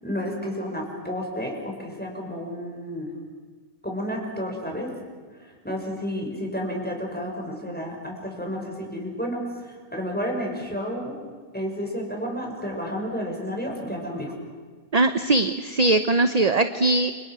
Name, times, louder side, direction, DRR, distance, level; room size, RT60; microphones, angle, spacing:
voice 1, 0.0-3.1 3.8-4.9 5.3-11.2 11.5-14.3, equal, 5° left, 0 dB, 6.1 m, -31 dB
voice 2, 14.9-17.1, right 2 dB, 35° right, 9 dB, 0.9 m, -20 dB
30.0 x 27.0 x 6.4 m, 1.5 s
omnidirectional pair, 1.5 m